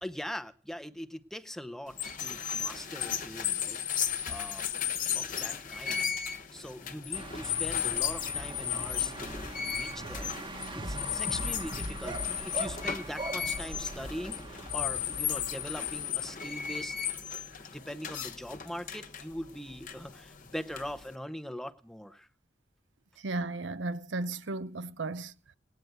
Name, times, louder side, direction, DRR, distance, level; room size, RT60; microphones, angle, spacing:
voice 1, 0.0-3.8 4.3-4.7 5.1-6.1 6.5-10.4 10.7-17.0 17.7-22.3, equal, ahead, 0.7 m, -42 dB
sound 1, 1.9-21.1, left 9 dB, 45° left, 1.3 m, -35 dB
sound 2, 7.1-16.0, right 1 dB, 25° right, 1.1 m, -40 dB
voice 2, 23.2-25.5, right 2 dB, 80° right, 0.7 m, -35 dB
19.0 x 9.3 x 8.0 m
head